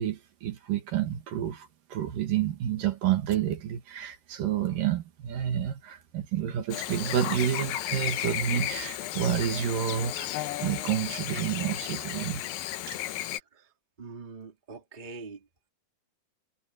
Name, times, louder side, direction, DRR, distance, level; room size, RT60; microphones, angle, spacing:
voice 1, 0.0-10.3 10.6-12.4 12.9-13.0, right 10 dB, 70° right, 3.1 m, -29 dB
Chirp tweet / Buzz, 6.7-13.4, left 13 dB, 75° left, 2.6 m, -34 dB
voice 2, 14.0-15.4, right 4 dB, 15° right, 1.8 m, -43 dB
omnidirectional pair, 4.3 m